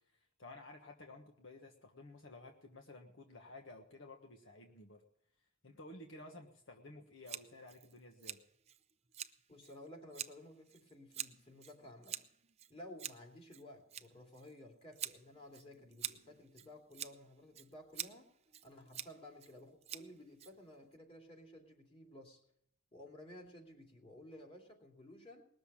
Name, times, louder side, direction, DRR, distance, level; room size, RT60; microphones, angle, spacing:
voice 1, 0.4-5.0 5.6-8.4, left 2 dB, 65° left, 3 dB, 1.3 m, -54 dB
Scissors, 7.3-21.0, right 10 dB, 30° right, 0.6 m, -48 dB
voice 2, 9.5-12.2 12.7-18.3 18.6-22.4 22.9-25.5, left 1 dB, 25° left, 1 dB, 2.7 m, -55 dB
19.5 x 6.9 x 8.5 m, 0.71 s
head